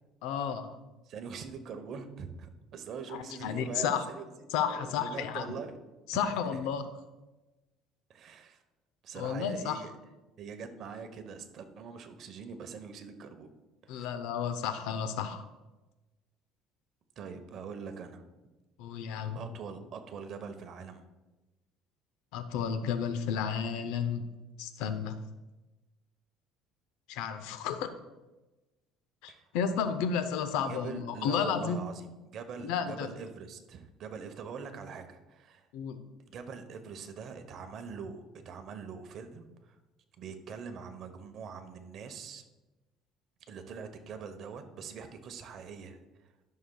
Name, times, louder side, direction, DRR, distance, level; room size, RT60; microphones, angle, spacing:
voice 1, 0.2-0.8 3.1-4.0 4.5-5.5 6.1-6.8 9.2-9.8 13.9-15.4 18.8-19.4 22.3-24.2 24.6-25.2 27.1-27.9 29.2-31.8 32.6-33.1 35.7-36.0, left 7 dB, 85° left, 10 dB, 0.6 m, -32 dB
voice 2, 1.0-4.2 4.7-5.8 6.1-6.6 8.1-8.6 9.0-9.9 10.4-13.5 13.8-14.1 17.2-18.2 19.3-21.0 29.3-29.5 30.6-35.7 36.3-39.8 40.2-42.4 43.5-46.0, right 6 dB, 55° right, 7 dB, 0.9 m, -43 dB
13.0 x 6.5 x 2.3 m, 1.1 s
cardioid pair, 115°, 0 cm